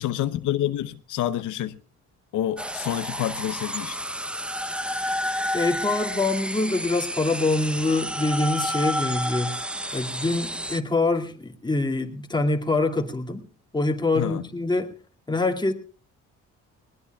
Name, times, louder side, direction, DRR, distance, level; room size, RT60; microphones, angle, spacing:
voice 1, 0.0-1.8 2.3-4.0 14.1-14.5, left 12 dB, 80° left, 0.9 m, -28 dB
sound 1, 2.6-10.8, equal, 5° right, 0.7 m, -30 dB
voice 2, 5.5-9.6 9.9-13.4 13.7-14.9 15.3-15.7, left 2 dB, 15° left, 2.4 m, -25 dB
20.5 x 20.0 x 2.3 m
cardioid pair, 90°, 30 cm